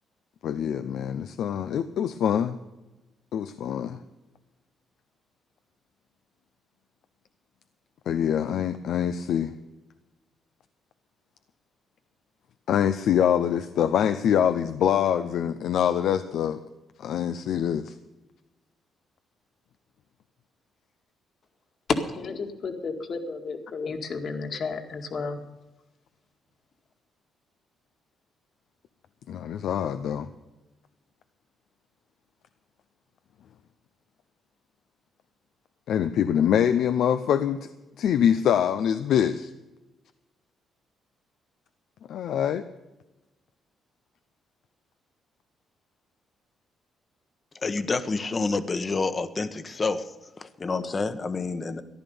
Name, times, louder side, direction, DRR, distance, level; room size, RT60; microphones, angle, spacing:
voice 1, 0.4-2.6 3.3-4.0 8.1-9.5 12.7-16.6 17.0-17.9 29.3-30.3 35.9-37.7 38.0-39.5 42.1-42.6, left 9 dB, 75° left, 11 dB, 0.6 m, -24 dB
voice 2, 22.1-25.4, left 4 dB, 55° left, 5 dB, 2.0 m, -33 dB
voice 3, 47.6-50.1 50.4-51.8, left 3 dB, 35° left, 11 dB, 1.1 m, -28 dB
14.0 x 11.0 x 7.0 m, 1.1 s
cardioid pair, 90°, 0 cm